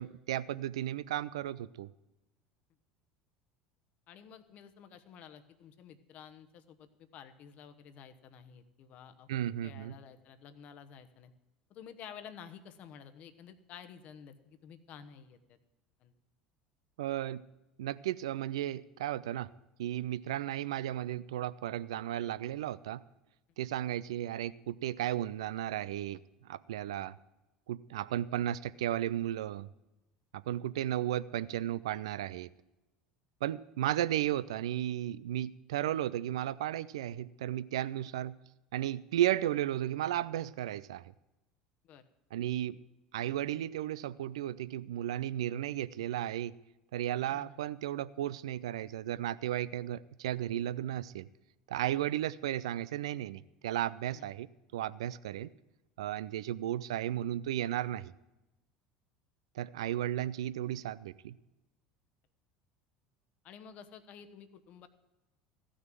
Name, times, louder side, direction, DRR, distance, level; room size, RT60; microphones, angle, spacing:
voice 1, 0.0-1.9 9.3-10.0 17.0-17.4 17.8-19.5 19.8-23.0 23.6-26.2 26.5-27.2 27.7-29.7 30.3-32.5 33.4-38.4 38.7-41.1 42.3-42.8 43.1-46.5 46.9-51.3 51.7-54.5 54.7-55.5 56.0-58.1 59.6-61.4, right 12 dB, 80° right, 18 dB, 0.4 m, -34 dB
voice 2, 4.1-9.3 9.6-11.3 11.7-15.6 16.0-16.1 38.0-38.1 41.8-42.1 47.3-47.6 54.1-54.3 63.4-64.9, left 8 dB, 50° left, 9 dB, 1.0 m, -52 dB
15.0 x 6.4 x 7.7 m, 0.99 s
hypercardioid pair, 75°, 3 cm